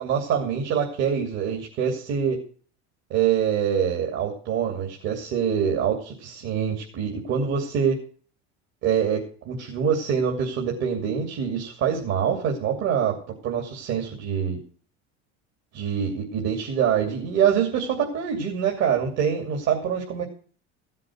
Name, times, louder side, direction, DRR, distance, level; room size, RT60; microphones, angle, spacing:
voice 1, 0.0-2.4 3.1-8.0 8.8-14.6 15.7-20.2, right 7 dB, 60° right, 1 dB, 2.8 m, -25 dB
15.0 x 7.6 x 6.3 m, 0.43 s
supercardioid pair, 100°, 31 cm